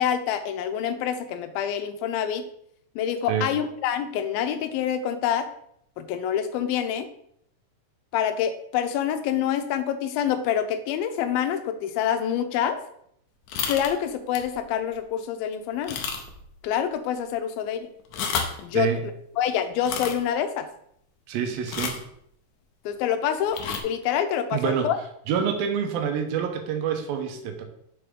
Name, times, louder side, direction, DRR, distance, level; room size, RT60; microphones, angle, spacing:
voice 1, 0.0-2.4 3.0-5.5 6.0-7.1 8.1-12.8 13.7-16.0 16.6-17.9 18.6-18.9 19.4-20.7 22.9-25.0, left 9 dB, 85° left, 9 dB, 2.5 m, -26 dB
sound 1, 13.5-13.9 14.3-14.5 15.0-15.1 15.8-16.5 16.7-16.8 18.0-18.6 19.8-20.2 21.7-22.1 23.5-23.8, left 6 dB, 70° left, 2.0 m, -30 dB
voice 2, 21.3-22.0 24.5-24.9 25.3-27.6, right 7 dB, 85° right, 5 dB, 2.7 m, -27 dB
6.8 x 6.4 x 3.7 m, 0.71 s
omnidirectional pair, 4.1 m